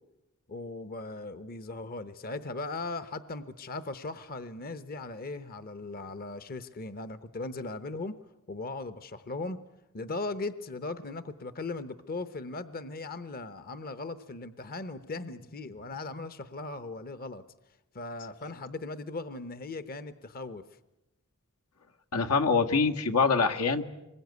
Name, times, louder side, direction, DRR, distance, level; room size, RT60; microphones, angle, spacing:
voice 1, 0.5-8.1 8.5-9.6 9.9-17.4 17.9-20.6, left 3 dB, 40° left, 13 dB, 0.9 m, -38 dB
voice 2, 22.1-23.8, left 4 dB, 85° left, 4 dB, 1.6 m, -24 dB
26.0 x 21.5 x 9.5 m, 0.95 s
head